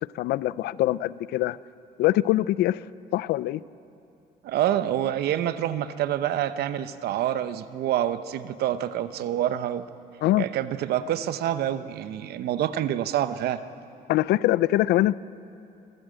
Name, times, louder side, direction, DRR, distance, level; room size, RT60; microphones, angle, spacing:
voice 1, 0.0-1.6 2.0-2.8 3.1-3.6 10.2-10.5 14.1-15.2, left 15 dB, 75° left, 19 dB, 0.5 m, -23 dB
voice 2, 4.4-9.9 10.4-13.6, right 11 dB, 70° right, 12 dB, 0.8 m, -27 dB
25.5 x 13.5 x 7.7 m, 2.7 s
cardioid pair, 110°, 17 cm